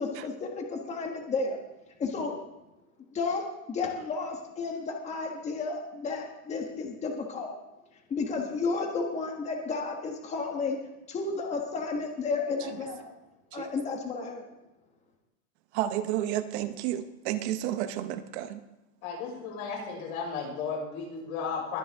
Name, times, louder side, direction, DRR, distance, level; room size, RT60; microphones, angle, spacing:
voice 1, 0.0-1.6 2.0-2.3 3.1-7.6 8.1-10.8 11.1-13.1 13.5-14.4, left 4 dB, 15° left, 2 dB, 1.3 m, -32 dB
voice 2, 15.7-18.6, right 12 dB, 55° right, 10 dB, 1.0 m, -31 dB
voice 3, 19.0-21.8, left 5 dB, 90° left, -2 dB, 6.1 m, -34 dB
21.0 x 9.6 x 3.6 m, 0.99 s
supercardioid pair, 175°, 40 cm